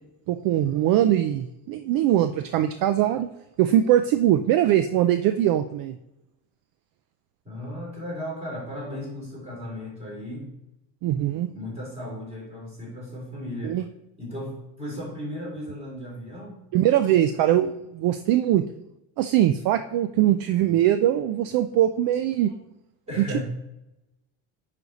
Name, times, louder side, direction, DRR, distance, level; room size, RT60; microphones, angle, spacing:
voice 1, 0.3-3.3 3.6-6.0 11.0-11.5 13.6-13.9 16.7-18.6 19.2-22.5 23.3-23.4, right 12 dB, 55° right, 10 dB, 0.5 m, -21 dB
voice 2, 7.4-10.5 11.3-13.8 14.2-16.6 23.1-23.4, left 1 dB, 15° right, -4 dB, 3.2 m, -35 dB
9.6 x 5.2 x 4.1 m, 0.91 s
cardioid pair, 170°, 41 cm